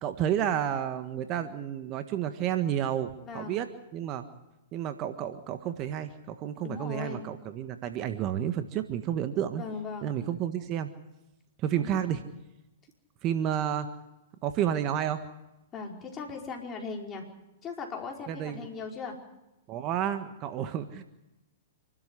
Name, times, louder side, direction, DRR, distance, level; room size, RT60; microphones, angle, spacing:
voice 1, 0.0-3.7 3.9-4.2 4.7-9.6 10.0-10.9 11.6-12.2 13.2-13.9 14.4-15.2 18.3-18.7 19.7-21.0, right 10 dB, 35° right, 8 dB, 1.6 m, -30 dB
voice 2, 3.2-3.7 6.6-7.3 9.5-10.2 11.8-12.1 15.7-17.3 17.6-19.2, left 4 dB, 25° left, 1 dB, 4.9 m, -38 dB
27.5 x 13.0 x 10.0 m, 0.95 s
hypercardioid pair, 115°, 0 cm